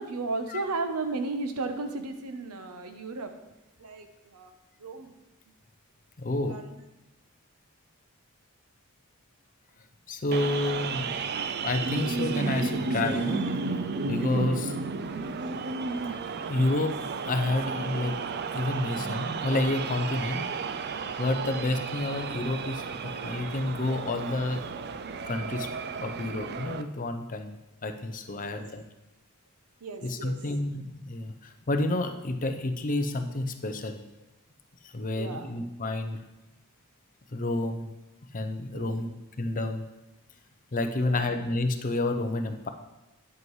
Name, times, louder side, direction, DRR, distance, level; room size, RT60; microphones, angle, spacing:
voice 1, 0.0-3.3 3.8-4.5 4.8-5.1 6.4-6.8 14.3-14.6 28.4-28.7 29.8-30.4 35.1-35.5 38.7-39.1 41.0-41.3, right 3 dB, 90° right, 7 dB, 0.9 m, -35 dB
voice 2, 6.2-6.6 10.1-11.1 11.6-13.5 14.1-14.7 16.5-17.0 17.3-18.2 18.5-20.5 21.2-24.6 25.2-25.7 26.0-27.6 27.8-28.8 30.0-34.0 34.8-36.2 37.3-37.9 38.3-39.1 39.4-39.9 40.7-42.7, left 2 dB, 35° left, 7 dB, 0.6 m, -29 dB
sound 1, 10.3-26.8, right 4 dB, 45° right, 0.4 m, -33 dB
9.3 x 8.1 x 3.2 m, 1.0 s
head